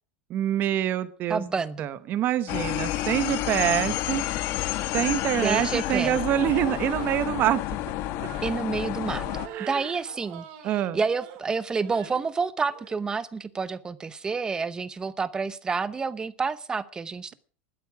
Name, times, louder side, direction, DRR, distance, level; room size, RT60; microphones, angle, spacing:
voice 1, 0.3-1.4 1.8-4.2 4.9-7.6 9.4-9.9 10.6-11.0, right 12 dB, 30° right, 1.1 m, -26 dB
voice 2, 1.3-1.9 5.4-6.2 8.4-9.3 9.6-17.3, right 4 dB, 10° right, 0.7 m, -29 dB
sound 1, 2.5-9.5, left 14 dB, 40° left, 1.1 m, -30 dB
sound 2, 6.5-7.4 8.1-8.7 9.2-10.7 11.1-11.5 11.8-12.2 12.7-13.0, right 10 dB, 50° right, 2.9 m, -43 dB
13.5 x 12.0 x 6.0 m
supercardioid pair, 160°, 6 cm